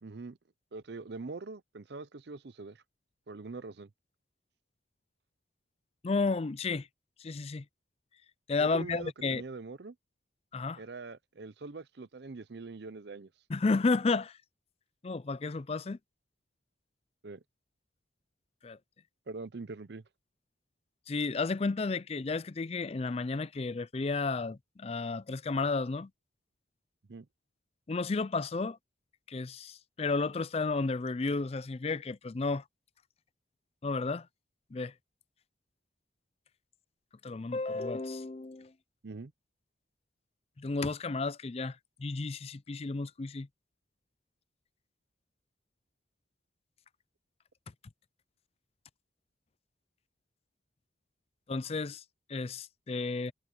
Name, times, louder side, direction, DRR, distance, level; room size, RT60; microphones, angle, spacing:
voice 1, 0.0-0.4 0.7-2.8 3.3-3.9 8.6-9.9 10.8-13.3 17.2-17.4 19.3-20.0 27.1-27.3 39.0-39.3, right 3 dB, 60° right, 0.6 m, -43 dB
voice 2, 6.0-6.9 7.2-7.6 8.5-9.4 10.5-10.8 13.5-14.4 15.0-16.0 18.6-18.8 21.1-26.1 27.9-28.8 29.3-32.6 33.8-34.3 34.7-34.9 37.2-38.7 40.6-43.5 51.5-52.0 52.3-53.3, left 3 dB, 30° left, 0.4 m, -32 dB
head